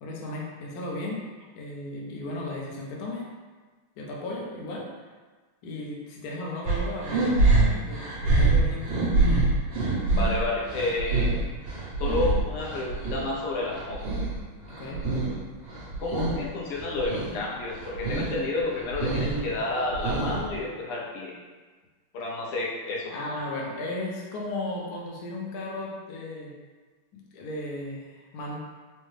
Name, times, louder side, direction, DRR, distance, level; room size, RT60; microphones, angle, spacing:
voice 1, 0.0-3.3 4.0-5.1 5.6-9.0 14.7-15.1 23.1-26.6 27.1-28.6, left 2 dB, 70° left, -2 dB, 0.9 m, -35 dB
sound 1, 6.7-13.2 13.6-15.4 15.7-16.4 16.7-17.3 17.7-18.3 18.7-20.6, right 2 dB, 60° right, 1.9 m, -25 dB
voice 2, 10.1-11.3 12.0-14.0 16.0-21.3 22.1-23.1, left 2 dB, 90° left, -3 dB, 1.7 m, -30 dB
4.8 x 2.1 x 3.2 m, 1.4 s
omnidirectional pair, 2.4 m